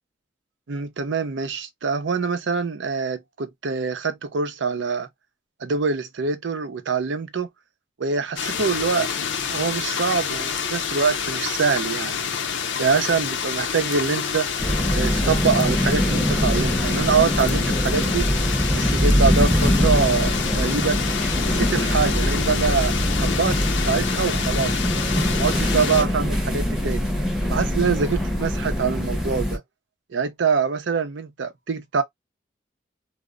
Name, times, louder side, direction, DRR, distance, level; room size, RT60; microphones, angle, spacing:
voice 1, 0.7-5.1 5.6-7.5 8.0-9.1 9.5-12.2 12.8-14.5 14.9-18.3 18.7-21.0 21.5-23.6 23.9-24.8 25.4-27.1 27.5-29.6 30.1-32.0, right 5 dB, 85° right, 0.5 m, -24 dB
sound 1, 8.4-26.0, left 6 dB, 85° left, 0.6 m, -28 dB
sound 2, 14.6-29.6, equal, ahead, 0.6 m, -23 dB
2.1 x 2.0 x 3.5 m
head